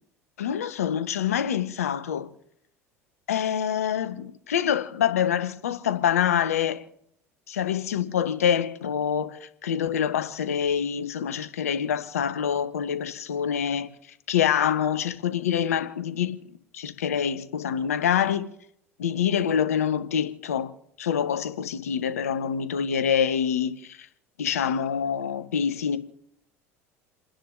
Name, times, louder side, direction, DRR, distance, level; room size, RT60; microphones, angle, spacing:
voice 1, 0.4-2.3 3.3-6.8 7.5-13.9 14.3-16.4 16.7-18.5 19.0-20.7 21.0-24.1 24.4-26.0, left 8 dB, 80° left, 1.0 m, -26 dB
29.5 x 10.5 x 2.6 m
hypercardioid pair, 75°, 8 cm